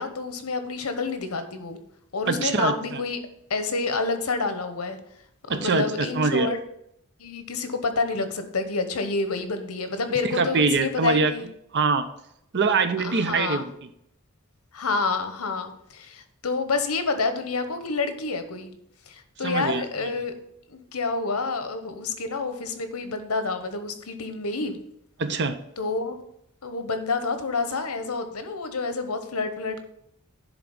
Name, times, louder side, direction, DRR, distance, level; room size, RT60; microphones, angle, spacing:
voice 1, 0.0-1.8 2.1-3.2 3.5-5.0 5.5-6.6 7.2-11.5 13.0-13.6 14.7-18.7 19.1-20.3 20.7-24.8 25.8-26.2 26.6-29.8, left 4 dB, 85° left, 8 dB, 1.0 m, -28 dB
voice 2, 2.3-3.0 5.5-6.5 10.3-11.3 11.7-12.1 12.5-13.7 19.4-19.8 25.2-25.6, right 4 dB, 55° right, 10 dB, 0.7 m, -23 dB
10.5 x 3.7 x 5.4 m, 0.74 s
head